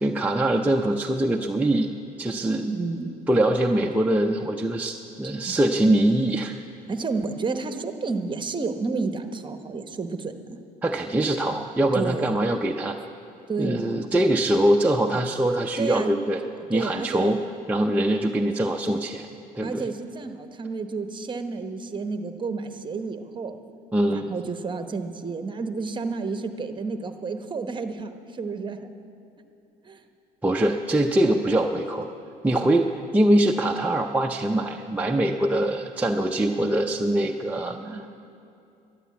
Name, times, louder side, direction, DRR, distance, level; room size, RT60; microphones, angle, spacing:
voice 1, 0.0-1.9 2.2-2.7 3.3-6.5 10.8-13.0 13.6-16.4 16.7-17.4 17.7-19.3 19.5-19.8 23.9-24.3 30.4-32.1 32.4-38.1, right 1 dB, 10° right, 1 dB, 0.5 m, -23 dB
voice 2, 2.7-3.1 5.3-5.6 6.9-10.6 11.9-12.5 13.5-14.1 15.1-15.2 15.8-16.1 16.7-17.5 19.6-23.6 24.1-28.9 29.8-30.0 37.6-38.0, right 4 dB, 30° right, 7 dB, 1.0 m, -31 dB
11.5 x 11.0 x 8.4 m, 2.6 s
cardioid pair, 110°, 17 cm